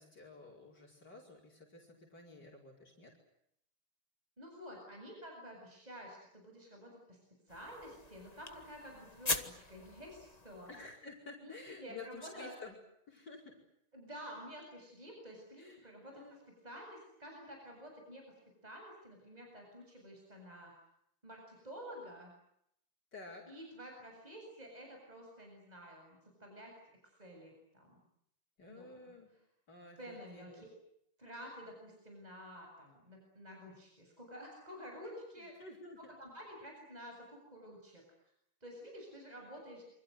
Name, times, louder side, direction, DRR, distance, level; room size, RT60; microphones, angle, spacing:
voice 1, 0.0-3.1 10.7-12.8 13.1-13.4 15.6-16.4 23.1-23.4 28.6-29.3 29.7-30.6 35.4-36.0, left 3 dB, 50° left, -1 dB, 5.6 m, -52 dB
voice 2, 4.4-7.2 7.5-10.7 11.4-12.6 13.9-18.2 18.6-20.7 21.2-22.3 23.5-26.7 27.2-28.0 28.7-28.9 30.0-30.7 31.2-35.5 36.0-38.0 38.6-39.8, equal, 20° right, 1 dB, 7.8 m, -50 dB
sound 1, 7.5-11.0, left 2 dB, 20° left, 1.9 m, -42 dB
28.5 x 26.0 x 7.9 m, 0.75 s
omnidirectional pair, 2.3 m